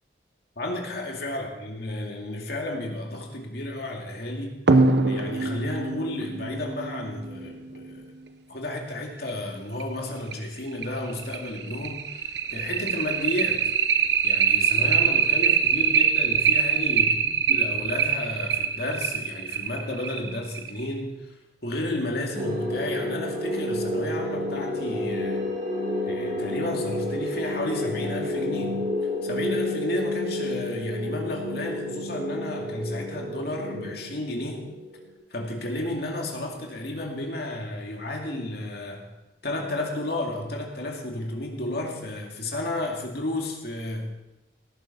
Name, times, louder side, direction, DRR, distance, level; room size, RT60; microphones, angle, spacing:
voice 1, 0.6-4.6 5.1-8.1 8.5-13.7 14.2-21.4 21.6-25.5 26.1-28.8 29.2-34.7 35.3-39.1 39.4-44.1, left 1 dB, 55° left, 1 dB, 2.3 m, -32 dB
sound 1, 4.7-7.8 9.3-9.4 9.8-9.9 10.3-10.4 10.8-20.9, right 6 dB, 60° right, 0.8 m, -23 dB
sound 2, 22.3-35.1, left 1 dB, 40° right, 2.7 m, -30 dB
18.0 x 10.0 x 4.2 m, 0.95 s
head